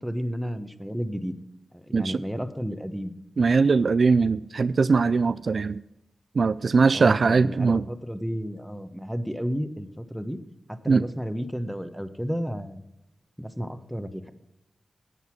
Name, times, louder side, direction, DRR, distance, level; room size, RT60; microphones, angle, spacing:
voice 1, 0.0-1.3 1.7-3.2 6.9-10.4 10.7-12.8 13.4-14.3, equal, 5° right, 10 dB, 1.2 m, -32 dB
voice 2, 3.4-5.8 6.4-7.9 10.9-11.0, right 4 dB, 65° right, 15 dB, 0.3 m, -21 dB
11.0 x 8.2 x 5.9 m, 0.87 s
cardioid pair, 40°, 0 cm